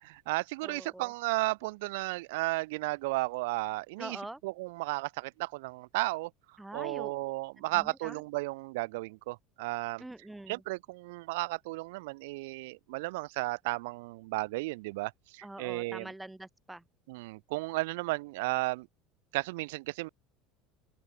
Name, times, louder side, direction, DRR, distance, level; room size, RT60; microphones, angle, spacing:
voice 1, 0.0-4.2 4.4-6.3 6.7-10.0 10.5-16.1 17.1-18.9 19.3-20.1, right 23 dB, 80° right, 3.5 m, -34 dB
voice 2, 0.6-1.1 4.0-4.4 6.6-7.1 7.7-8.2 10.0-10.6 15.4-16.8, right 1 dB, 5° right, 2.5 m, -44 dB
supercardioid pair, 110°, 0 cm